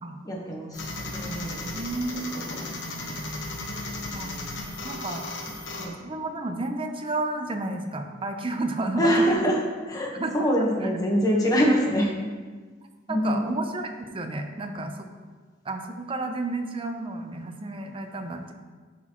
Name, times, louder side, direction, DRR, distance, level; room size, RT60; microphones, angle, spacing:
voice 1, 0.2-1.8 2.3-2.8 4.7-5.1 5.7-5.9 9.0-12.1 13.1-13.5, equal, 20° left, -2 dB, 1.2 m, -25 dB
sound 1, 0.7-5.9, left 2 dB, 65° left, 1.1 m, -35 dB
voice 2, 1.7-2.5 4.1-4.4 4.8-5.2 6.0-9.4 10.1-10.3 13.1-15.1 15.6-18.5, right 2 dB, 25° right, 5 dB, 0.6 m, -31 dB
11.5 x 4.1 x 3.0 m, 1.4 s
head